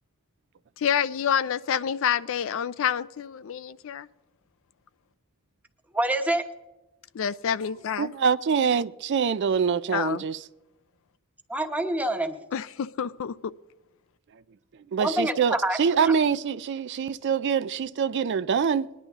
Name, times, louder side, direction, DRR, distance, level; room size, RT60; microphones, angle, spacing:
voice 1, 0.8-4.1 7.1-8.1 9.9-10.2 12.5-13.3, left 8 dB, 60° left, 0.4 m, -28 dB
voice 2, 5.9-6.4 11.5-12.4 15.0-15.8 16.0-16.1, right 1 dB, 5° right, 1.0 m, -26 dB
voice 3, 8.0-10.4 14.9-18.9, right 6 dB, 55° right, 0.4 m, -25 dB
21.5 x 10.5 x 3.6 m
head